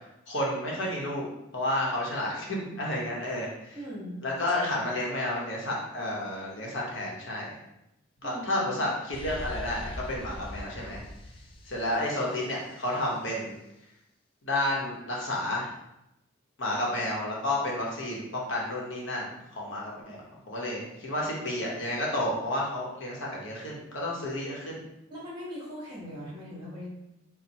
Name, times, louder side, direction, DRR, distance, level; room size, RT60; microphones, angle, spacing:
voice 1, 0.3-1.3 1.5-3.8 4.2-7.5 8.2-11.0 11.6-13.6 14.4-15.7 16.6-19.3 19.6-20.2 20.5-24.8, left 1 dB, 65° left, -3 dB, 1.0 m, -31 dB
voice 2, 3.7-4.2 8.2-8.9 16.7-16.8 25.1-26.9, equal, 20° right, -6 dB, 1.3 m, -40 dB
sound 1, 9.1-12.9, left 1 dB, 25° left, 0.3 m, -41 dB
4.3 x 2.1 x 4.1 m, 0.87 s
head